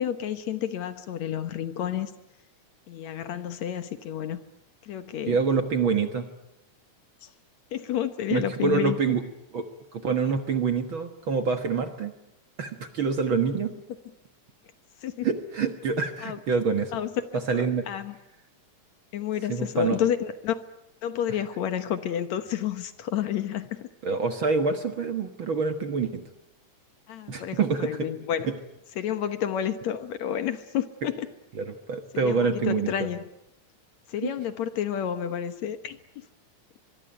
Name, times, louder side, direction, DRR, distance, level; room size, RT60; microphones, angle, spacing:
voice 1, 0.0-2.1 2.9-4.4 4.8-5.4 7.2-7.3 7.7-9.0 15.0-15.3 16.2-16.4 16.9-17.1 17.5-18.2 19.1-20.6 21.0-23.9 27.1-28.5 29.0-31.3 32.1-33.2 34.1-36.0, left 10 dB, 65° left, 10 dB, 2.3 m, -30 dB
voice 2, 5.3-6.3 8.3-9.2 9.5-12.1 12.6-13.7 15.2-16.9 17.3-17.8 19.5-20.0 24.0-26.2 27.3-28.1 28.5-28.6 31.6-33.1 34.2-34.3, right 5 dB, 50° right, 7 dB, 1.8 m, -26 dB
24.5 x 23.0 x 9.1 m, 0.84 s
omnidirectional pair, 3.6 m